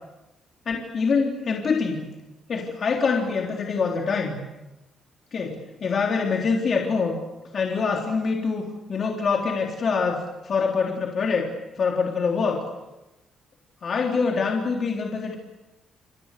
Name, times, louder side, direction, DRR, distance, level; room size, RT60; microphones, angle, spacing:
voice 1, 0.7-2.0 2.5-4.4 5.3-7.2 7.5-11.5 11.8-12.6 13.8-15.4, left 5 dB, 45° left, 0 dB, 3.7 m, -25 dB
28.0 x 28.0 x 6.8 m, 1.0 s
cardioid pair, 120°, 0 cm